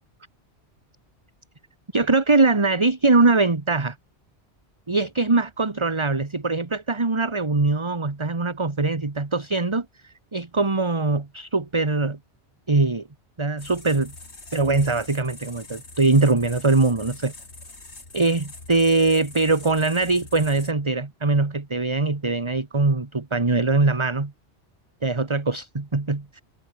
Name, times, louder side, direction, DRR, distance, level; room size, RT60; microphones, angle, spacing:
voice 1, 1.9-3.9 4.9-12.2 12.7-13.0 13.4-14.1 14.5-17.3 18.1-24.3 25.0-26.4, right 3 dB, 25° right, 1.5 m, -22 dB
sound 1, 13.6-20.7, left 3 dB, 80° left, 3.7 m, -43 dB
omnidirectional pair, 1.1 m